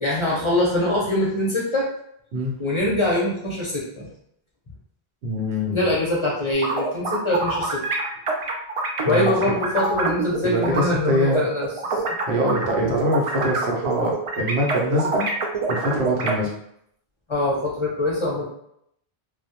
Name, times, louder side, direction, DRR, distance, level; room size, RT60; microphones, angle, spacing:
voice 1, 0.0-1.9 2.6-4.1 5.7-7.8 9.1-12.0 17.3-18.4, left 1 dB, 35° left, -5 dB, 0.5 m, -23 dB
voice 2, 5.2-5.9 9.0-9.3 10.4-11.4 12.3-15.3 15.7-16.5, equal, 90° right, -1 dB, 0.9 m, -24 dB
sound 1, 6.5-10.8 11.3-16.3, right 3 dB, 55° right, 0.3 m, -26 dB
2.3 x 2.1 x 2.7 m, 0.73 s
omnidirectional pair, 1.0 m